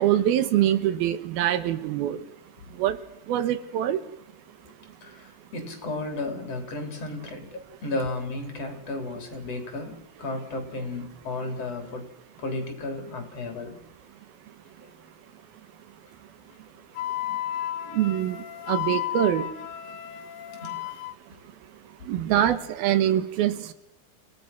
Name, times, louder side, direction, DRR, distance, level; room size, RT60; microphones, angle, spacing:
voice 1, 0.0-2.2 2.8-3.0 3.3-4.0 17.9-18.4 18.7-19.5 22.1-23.7, right 11 dB, 85° right, 13 dB, 2.9 m, -24 dB
voice 2, 5.0-12.1 12.4-13.8 14.8-14.9 16.5-16.6 20.6-21.0 22.2-22.3, left 2 dB, 40° left, 5 dB, 4.3 m, -34 dB
Wind instrument woodwind instrument, 17.0-21.2, left 12 dB, 70° left, 2.9 m, -33 dB
30.0 x 17.5 x 5.8 m, 0.85 s
omnidirectional pair, 4.3 m